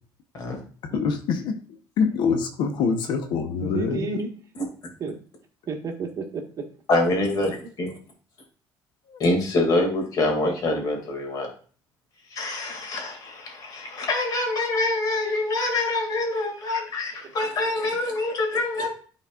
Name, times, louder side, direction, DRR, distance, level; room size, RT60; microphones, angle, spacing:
voice 1, 0.8-1.6 2.0-4.1 9.1-9.2, left 5 dB, 75° left, 6 dB, 0.8 m, -25 dB
voice 2, 3.6-4.3 5.0-5.2 5.7-6.7 7.4-7.5 17.2-17.3, right 4 dB, 45° right, 2 dB, 1.3 m, -31 dB
voice 3, 6.9-7.5 7.8-7.9 9.2-11.5 12.3-18.9, left 2 dB, 50° left, 2 dB, 2.1 m, -25 dB
10.5 x 4.1 x 2.4 m, 0.41 s
cardioid pair, 110°, 8 cm